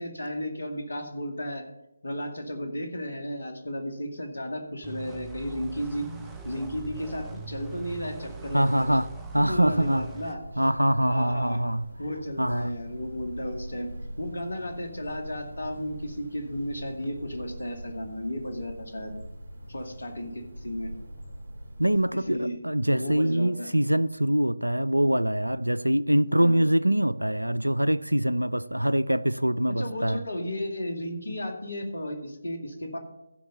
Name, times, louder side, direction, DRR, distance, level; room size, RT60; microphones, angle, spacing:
voice 1, 0.0-1.6 2.0-6.1 6.4-8.8 9.4-10.6 11.1-11.6 12.0-13.9 14.2-19.1 19.7-20.9 22.1-22.6 22.9-23.7 26.4-26.6 29.7-33.0, equal, 65° left, 2.2 m, -34 dB
sound 1, 4.8-10.4, right 6 dB, 10° right, 0.7 m, -42 dB
sound 2, 6.0-22.6, equal, 50° right, 2.6 m, -43 dB
voice 2, 8.5-9.1 9.3-10.1 10.6-11.8 12.4-12.7 21.8-30.2, right 1 dB, 85° right, 0.4 m, -24 dB
15.0 x 5.3 x 5.5 m
figure-of-eight pair, 150°, 0 cm